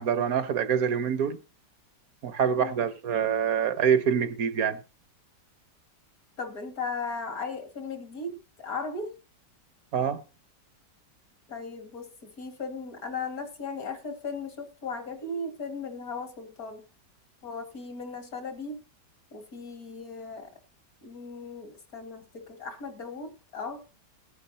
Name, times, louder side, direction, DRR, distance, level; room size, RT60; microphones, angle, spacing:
voice 1, 0.0-1.4 2.2-4.8 9.9-10.2, right 7 dB, 60° right, 1.4 m, -25 dB
voice 2, 6.4-9.2 11.5-16.8 17.4-18.8 19.3-20.5 21.0-23.8, left 4 dB, 55° left, 2.3 m, -37 dB
18.5 x 9.9 x 2.8 m
omnidirectional pair, 1.8 m